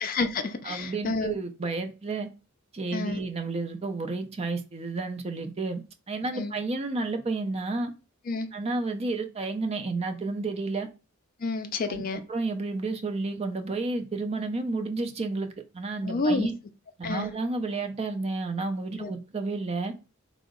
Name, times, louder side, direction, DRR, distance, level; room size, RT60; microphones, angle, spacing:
voice 1, 0.0-1.4 2.9-3.2 6.3-6.5 8.3-8.5 11.4-12.2 16.0-16.5 17.0-17.3 19.0-19.1, left 3 dB, 45° left, 0.4 m, -29 dB
voice 2, 0.6-2.3 2.7-7.9 8.5-10.9 11.9-16.5 17.0-19.9, right 3 dB, 30° right, 0.5 m, -31 dB
3.7 x 2.0 x 3.6 m
head